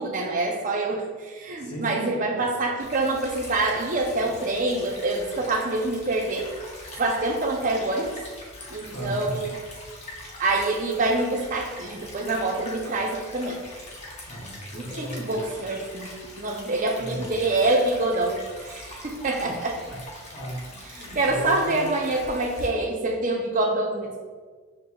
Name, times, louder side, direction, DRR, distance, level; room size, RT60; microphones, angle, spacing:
voice 1, 0.0-6.5 7.0-8.2 8.7-9.5 10.4-13.6 14.7-19.7 20.9-24.1, right 2 dB, 40° right, 1 dB, 0.5 m, -26 dB
voice 2, 1.5-2.5 8.9-9.4 14.3-15.5 17.0-17.3 19.1-19.5 19.8-20.0 20.3-21.9, right 1 dB, 55° left, -4 dB, 1.1 m, -36 dB
Stream / Trickle dribble, 2.8-22.7, left 1 dB, 35° left, 0.7 m, -42 dB
6.4 x 3.0 x 2.3 m, 1.5 s
head